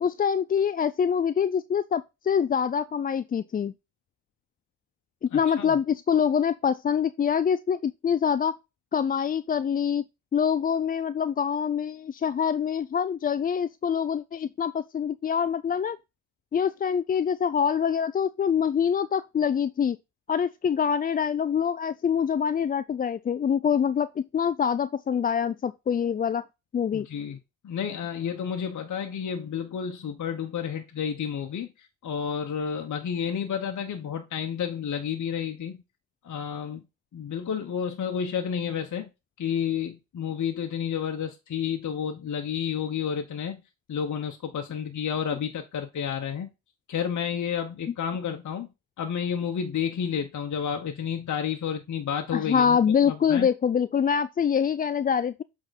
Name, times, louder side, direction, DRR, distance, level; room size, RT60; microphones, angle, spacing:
voice 1, 0.0-3.7 5.2-8.5 8.9-10.0 10.3-16.0 16.5-20.0 20.3-26.4 26.7-27.1 52.3-55.4, left 7 dB, 25° left, 0.3 m, -25 dB
voice 2, 5.3-5.7 26.9-27.4 27.6-35.8 36.2-36.8 37.1-39.1 39.4-43.6 43.9-46.5 46.9-48.7 49.0-52.8 53.0-53.5, left 7 dB, 50° left, 1.1 m, -30 dB
7.8 x 3.8 x 4.1 m
supercardioid pair, 60°, 39 cm